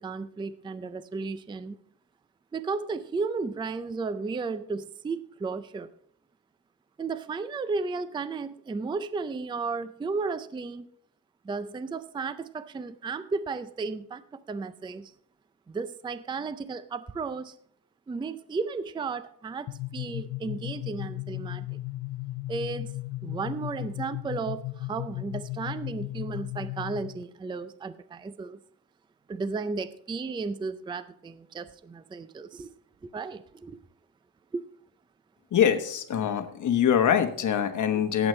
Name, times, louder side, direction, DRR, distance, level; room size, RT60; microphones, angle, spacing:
voice 1, 0.0-1.8 2.5-5.9 7.0-10.9 11.4-15.1 15.7-17.6 18.1-21.8 22.5-22.9 23.2-28.6 29.3-32.7 33.0-33.8 34.5-34.6, right 4 dB, 15° right, 13 dB, 0.4 m, -34 dB
sound 1, 19.7-27.2, left 17 dB, 80° left, 0.5 m, -36 dB
voice 2, 35.5-38.3, left 8 dB, 55° left, 8 dB, 1.2 m, -24 dB
18.5 x 8.0 x 3.2 m, 0.66 s
wide cardioid pair, 145°, 35 cm